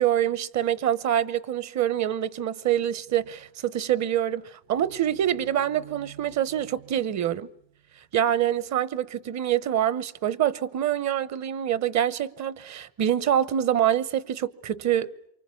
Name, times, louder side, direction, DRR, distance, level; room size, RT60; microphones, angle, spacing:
voice 1, 0.0-7.5 8.1-15.3, right 11 dB, 50° right, 1.0 m, -25 dB
sound 1, 3.1-8.3, right 10 dB, 75° right, 2.6 m, -53 dB
27.0 x 24.5 x 8.4 m
cardioid pair, 120°, 35 cm